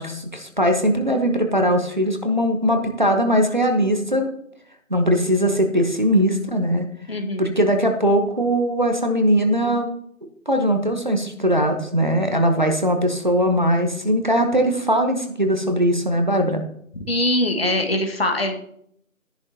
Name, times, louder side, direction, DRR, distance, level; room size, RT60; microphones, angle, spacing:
voice 1, 0.0-4.3 4.9-6.9 7.4-9.9 10.5-16.6, equal, 35° right, 5 dB, 1.0 m, -20 dB
voice 2, 7.1-7.6 17.1-18.6, left 1 dB, 45° left, 4 dB, 1.8 m, -22 dB
13.0 x 10.5 x 2.9 m, 0.68 s
figure-of-eight pair, 165°, 42 cm